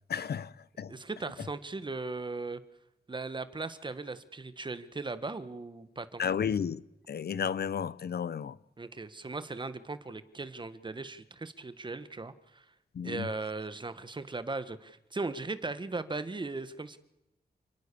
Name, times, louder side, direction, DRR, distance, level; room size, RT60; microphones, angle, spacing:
voice 1, 0.1-0.9 6.2-6.8 7.1-8.6 12.9-13.3, left 7 dB, 75° left, 0.9 m, -32 dB
voice 2, 0.9-2.6 3.1-6.2 8.8-12.6 13.0-17.0, right 3 dB, 30° right, 1.5 m, -38 dB
29.0 x 18.5 x 7.0 m
wide cardioid pair, 130°, 17 cm